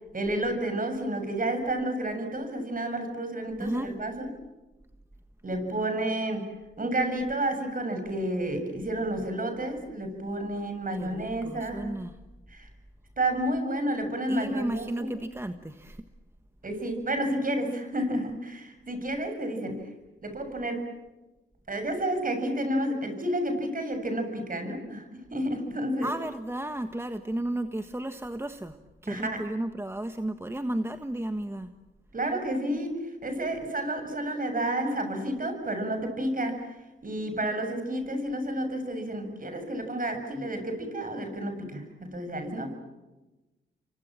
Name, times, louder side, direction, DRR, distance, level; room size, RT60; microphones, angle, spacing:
voice 1, 0.1-4.3 5.4-6.5 6.8-11.9 12.5-12.7 13.2-15.1 16.6-19.9 20.2-20.9 21.7-26.1 29.1-29.4 32.1-36.6 37.0-42.7, right 1 dB, 40° right, 6 dB, 7.4 m, -30 dB
voice 2, 3.6-3.9 10.9-12.1 14.3-16.0 26.0-28.8 29.0-31.7, right 1 dB, 10° right, 8 dB, 1.4 m, -33 dB
29.5 x 24.0 x 7.6 m, 1.1 s
cardioid pair, 65°, 21 cm